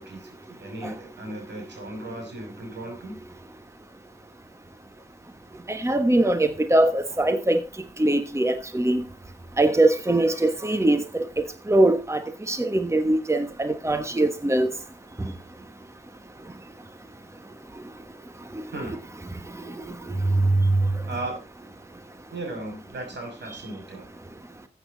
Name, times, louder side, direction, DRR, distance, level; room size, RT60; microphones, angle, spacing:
voice 1, 0.0-3.2 18.7-19.0 21.1-21.5 22.3-24.1, right 2 dB, 85° right, 6.4 m, -36 dB
voice 2, 5.7-7.6 8.0-9.0 9.6-11.2 11.7-12.2 12.5-14.7 15.2-15.3, right 1 dB, 15° right, 1.3 m, -22 dB
13.5 x 8.5 x 4.0 m
cardioid pair, 55°, 18 cm